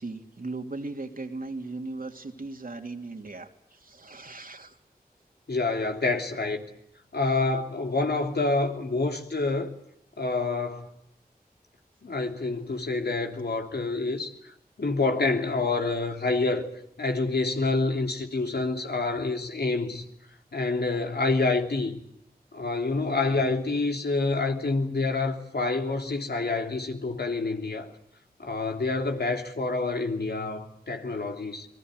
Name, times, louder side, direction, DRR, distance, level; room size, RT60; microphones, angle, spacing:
voice 1, 0.0-4.8, right 3 dB, 60° right, 2.9 m, -38 dB
voice 2, 5.5-6.6 7.1-9.7 10.2-10.9 12.0-14.3 14.8-16.7 17.0-20.0 20.5-22.0 22.5-27.9 28.4-31.7, left 3 dB, 85° left, 3.2 m, -27 dB
30.0 x 21.0 x 8.0 m
wide cardioid pair, 60°, 16 cm